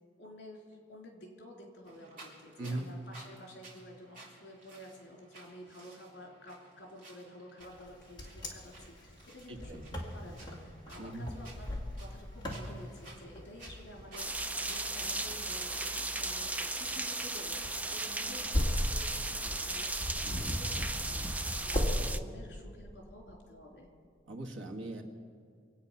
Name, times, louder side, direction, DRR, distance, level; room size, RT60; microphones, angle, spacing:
voice 1, 0.2-23.9, left 1 dB, 60° left, 0 dB, 3.4 m, -51 dB
sound 1, 1.9-16.7, right 2 dB, 45° right, 3.8 m, -56 dB
Wind, 7.8-22.0, left 1 dB, 25° left, 2.2 m, -38 dB
voice 2, 9.5-9.8 11.0-11.3 20.2-20.5 24.3-25.0, right 2 dB, 85° right, 1 dB, 1.8 m, -40 dB
sound 2, 14.2-22.2, right 2 dB, 10° right, 0.4 m, -36 dB
25.0 x 9.0 x 5.8 m, 2.2 s
head